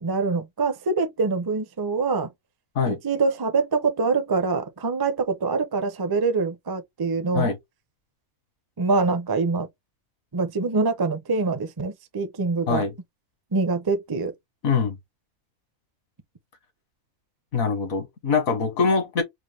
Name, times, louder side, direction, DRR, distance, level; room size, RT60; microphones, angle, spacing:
voice 1, 0.0-2.3 2.9-7.5 8.8-9.7 10.3-12.8 13.5-14.3, right 4 dB, 30° right, 0.4 m, -24 dB
voice 2, 14.6-15.0 17.5-19.2, left 5 dB, 75° left, 1.8 m, -23 dB
4.8 x 2.1 x 3.2 m
omnidirectional pair, 1.5 m